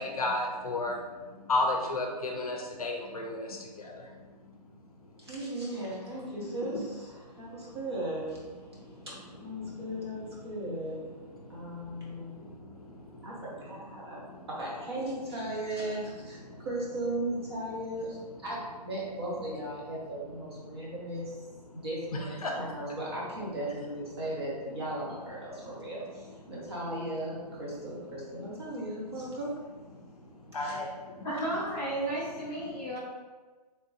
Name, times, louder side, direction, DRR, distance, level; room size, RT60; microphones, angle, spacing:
voice 1, 0.0-4.7 7.2-7.3 8.7-9.1 9.6-9.8 11.4-13.3 13.9-14.5 16.5-16.7 21.7-21.8 22.4-22.6 29.9-31.2, left 2 dB, 60° left, 1 dB, 0.5 m, -35 dB
voice 2, 5.2-8.4 9.0-11.0 11.5-12.4 13.2-21.4 21.7-29.5 30.5-30.7, right 1 dB, 35° right, -6 dB, 0.9 m, -37 dB
voice 3, 31.2-33.0, right 1 dB, 10° left, -11 dB, 1.0 m, -33 dB
3.4 x 2.9 x 2.8 m, 1.3 s
hypercardioid pair, 180°, 21 cm